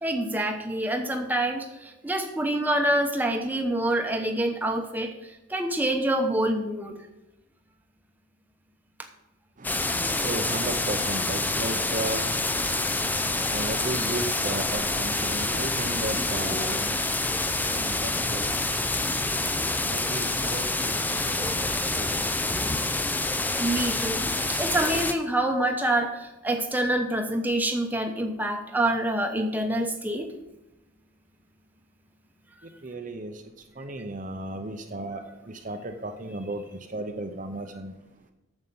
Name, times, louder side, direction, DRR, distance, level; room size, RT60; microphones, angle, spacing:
voice 1, 0.0-7.0 23.6-30.3, right 1 dB, 10° right, 0.9 m, -26 dB
sound 1, 9.6-25.1, left 2 dB, 10° left, 0.4 m, -27 dB
voice 2, 9.6-18.6 19.8-22.3 32.6-33.4 33.8-37.9, right 2 dB, 35° right, 0.7 m, -35 dB
9.3 x 7.1 x 7.0 m
head